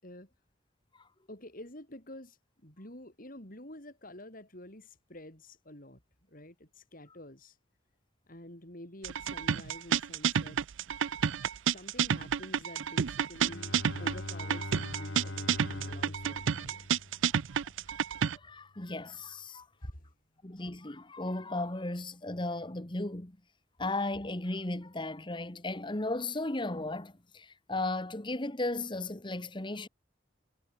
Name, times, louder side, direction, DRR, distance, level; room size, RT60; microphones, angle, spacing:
voice 1, 1.3-6.0 6.3-7.6 8.3-10.6 11.7-17.0 19.8-20.1 20.4-20.6, left 1 dB, 45° left, 6.0 m, -48 dB
sound 1, 9.0-18.4, right 7 dB, 85° right, 0.5 m, -30 dB
Bowed string instrument, 13.3-17.8, left 1 dB, 70° left, 2.2 m, -42 dB
voice 2, 18.3-19.7 20.4-23.4 23.8-29.9, left 2 dB, 25° left, 1.5 m, -35 dB
head